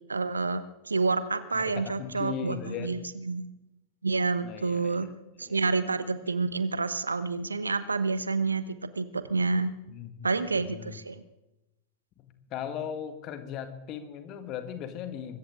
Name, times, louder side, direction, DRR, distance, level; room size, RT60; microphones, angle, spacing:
voice 1, 0.1-3.5 4.0-5.1 5.4-9.7 10.2-11.2, right 4 dB, 80° right, 13 dB, 1.0 m, -29 dB
voice 2, 1.5-2.9 4.4-5.0 5.4-5.6 9.9-11.0 12.2-15.4, left 9 dB, 35° left, 9 dB, 1.8 m, -38 dB
24.0 x 14.5 x 3.7 m, 0.93 s
figure-of-eight pair, 90°, 0 cm